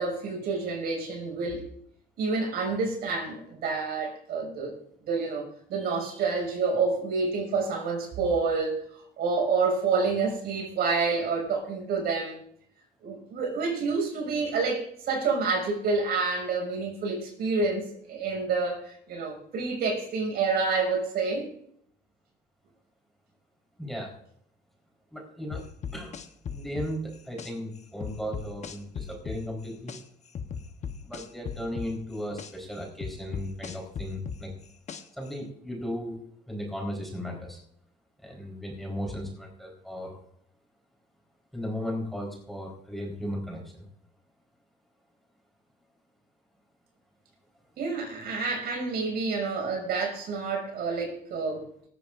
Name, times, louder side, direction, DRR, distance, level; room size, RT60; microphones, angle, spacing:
voice 1, 0.0-1.6 2.2-4.8 5.0-12.4 13.0-21.5 47.8-51.6, right 4 dB, 70° right, 1 dB, 6.2 m, -28 dB
voice 2, 5.8-6.2 23.8-24.1 25.1-25.6 25.9-26.2 26.5-29.9 31.0-34.5 35.1-36.2 36.5-37.6 38.2-40.2 41.5-43.9, equal, ahead, -1 dB, 4.2 m, -36 dB
sound 1, 25.5-27.5 28.0-30.0 30.3-32.5 33.0-35.3, left 7 dB, 45° left, 1.1 m, -37 dB
19.0 x 14.5 x 2.6 m, 0.67 s
cardioid pair, 110°, 17 cm